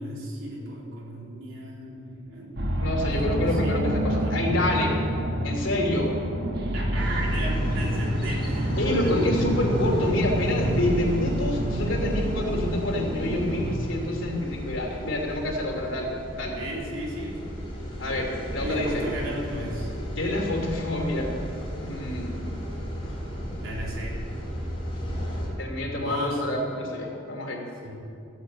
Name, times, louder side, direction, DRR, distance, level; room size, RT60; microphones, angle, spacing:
voice 1, 0.0-2.6 3.2-3.8 4.1-4.4 6.7-9.5 16.6-17.4 18.6-19.9 23.6-24.1 25.8-26.4 27.8-28.0, right 1 dB, 80° right, -4 dB, 3.8 m, -35 dB
sound 1, 2.6-13.8, equal, 55° right, 1.4 m, -28 dB
voice 2, 2.8-4.9 5.4-6.1 8.8-16.6 18.0-19.1 20.2-21.4 21.8-22.6 25.6-27.6, left 1 dB, 75° left, 0 dB, 3.0 m, -27 dB
sound 2, 6.9-25.5, equal, 25° left, 4.3 m, -34 dB
14.5 x 8.8 x 8.0 m, 2.6 s
head